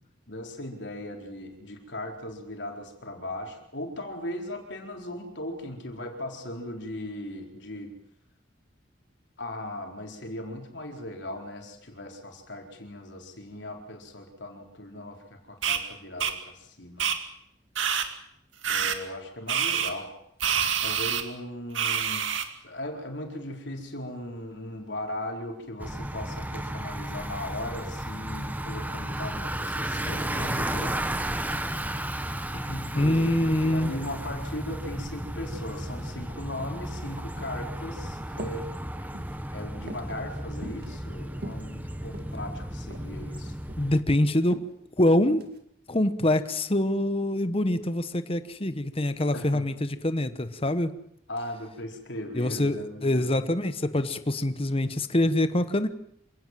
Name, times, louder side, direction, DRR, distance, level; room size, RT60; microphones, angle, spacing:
voice 1, 0.3-7.9 9.4-17.1 18.7-20.1 20.8-22.3 22.6-31.4 32.5-38.7 38.9-39.1 39.5-43.5 49.3-49.7 51.3-53.4 54.0-54.1, left 1 dB, 65° left, 3 dB, 4.5 m, -38 dB
sound 1, 15.6-15.8 16.2-16.3 17.0-17.2 17.8-18.1 18.6-19.0 19.5-19.9 20.4-21.2 21.8-22.5, right 8 dB, 90° right, 2.3 m, -26 dB
Bicycle, 25.8-44.0, right 1 dB, 10° right, 1.4 m, -34 dB
voice 2, 32.9-33.9 43.8-44.7 45.0-45.5 45.9-50.9 52.3-55.9, left 1 dB, 30° left, 11 dB, 1.1 m, -25 dB
sound 2, 38.4-38.7 39.0-39.4 39.9-40.1 40.6-40.9 41.3-42.4 42.9-43.1 43.5-44.0 44.5-44.7 45.3-45.6, right 1 dB, 55° right, 2.4 m, -41 dB
27.0 x 17.5 x 7.6 m, 0.72 s
head